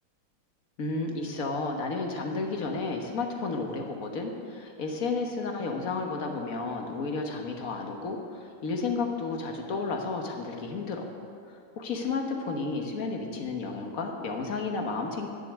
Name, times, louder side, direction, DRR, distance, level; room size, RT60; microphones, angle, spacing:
voice 1, 0.8-11.1 11.5-15.3, left 3 dB, 50° left, 2 dB, 1.5 m, -32 dB
10.5 x 6.8 x 8.6 m, 2.4 s
omnidirectional pair, 2.1 m